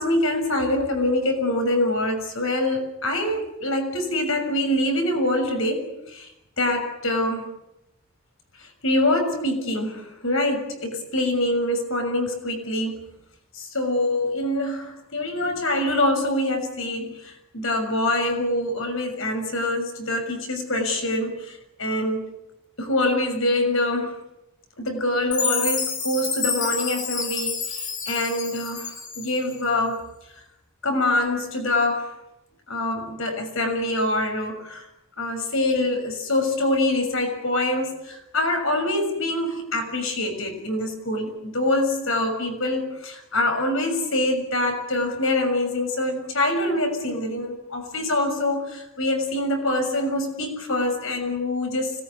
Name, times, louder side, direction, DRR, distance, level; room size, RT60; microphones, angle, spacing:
voice 1, 0.0-6.3 6.6-7.5 8.6-13.1 13.5-22.3 22.8-24.1 24.8-30.1 30.8-32.1 32.7-34.8 35.2-51.9, left 1 dB, 65° left, 5 dB, 6.7 m, -25 dB
Chime, 25.3-29.5, left 6 dB, 40° left, 4.5 m, -29 dB
25.5 x 19.5 x 9.7 m, 0.87 s
head